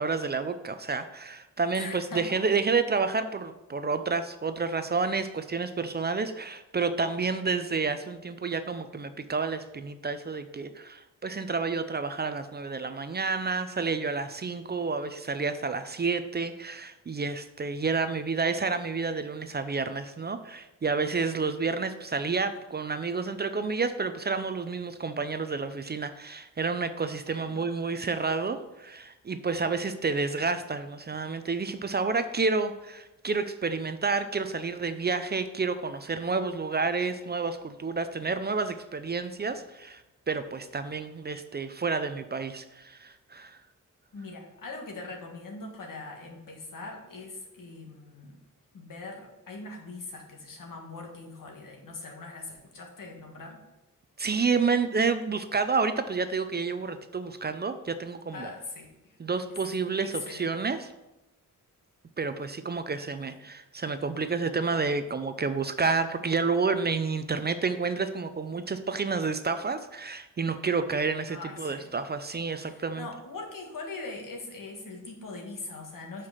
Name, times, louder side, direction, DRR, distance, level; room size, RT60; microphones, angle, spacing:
voice 1, 0.0-40.0 40.3-43.6 54.2-58.5 59.2-60.9 62.2-73.1, right 4 dB, 30° right, 10 dB, 0.4 m, -30 dB
voice 2, 1.7-2.4 27.3-27.6 44.1-48.4 48.7-53.6 58.3-59.2 60.0-60.6 63.1-63.4 71.3-71.9 72.6-76.3, left 3 dB, 75° left, 1 dB, 1.6 m, -41 dB
5.7 x 4.8 x 5.6 m, 0.97 s
wide cardioid pair, 90°, 33 cm